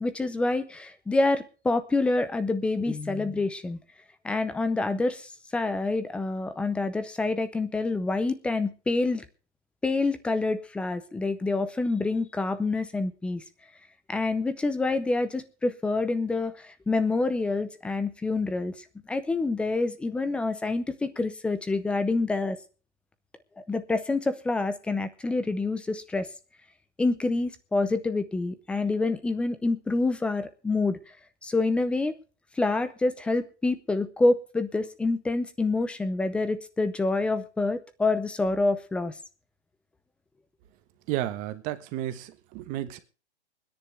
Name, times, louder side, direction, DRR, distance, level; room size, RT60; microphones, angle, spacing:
voice 1, 0.0-3.8 4.2-9.2 9.8-13.4 14.1-22.6 23.7-26.3 27.0-31.0 31.4-32.2 32.6-39.1, left 3 dB, 5° left, 12 dB, 0.6 m, -27 dB
voice 2, 41.1-43.0, right 13 dB, 25° right, 11 dB, 1.3 m, -32 dB
23.5 x 10.5 x 3.4 m, 0.36 s
hypercardioid pair, 150°, 33 cm